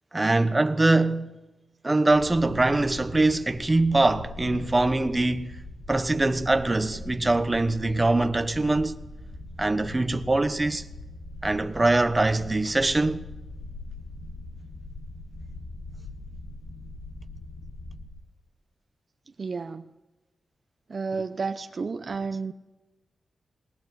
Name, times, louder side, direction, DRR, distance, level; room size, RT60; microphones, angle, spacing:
voice 1, 0.1-1.4 1.8-5.6 5.9-9.0 9.6-10.9 11.4-13.3, right 2 dB, 15° right, 1.0 m, -23 dB
sound 1, 2.1-18.1, left 2 dB, 60° left, 8.0 m, -41 dB
voice 2, 19.4-19.8 20.9-22.5, right 4 dB, 40° right, 0.6 m, -31 dB
21.0 x 19.5 x 7.8 m
wide cardioid pair, 150°, 0 cm